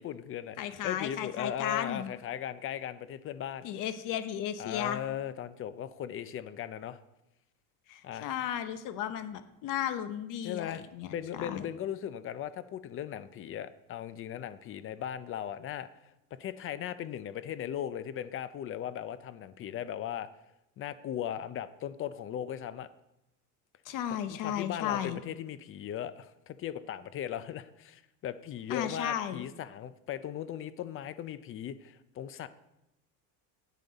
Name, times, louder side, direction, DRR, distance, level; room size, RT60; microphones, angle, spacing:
voice 1, 0.0-3.7 4.6-7.0 8.0-8.3 10.4-15.9 16.3-20.3 20.8-22.9 24.3-32.5, left 10 dB, 35° left, 14 dB, 0.5 m, -38 dB
voice 2, 0.6-2.1 3.6-5.0 7.9-11.1 11.4-11.7 23.8-25.2 28.7-29.5, left 10 dB, 55° left, 10 dB, 1.0 m, -34 dB
10.5 x 8.3 x 4.0 m, 0.89 s
cardioid pair, 145°, 40 cm